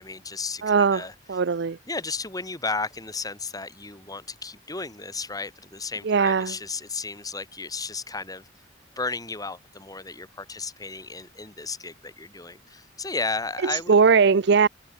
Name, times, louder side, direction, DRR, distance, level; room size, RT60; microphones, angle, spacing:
voice 1, 0.0-1.1 1.9-8.5 9.0-13.9, left 3 dB, 20° left, 4.0 m, -34 dB
voice 2, 0.6-1.8 6.0-6.6 13.6-14.7, right 5 dB, 60° right, 0.5 m, -20 dB
open air
head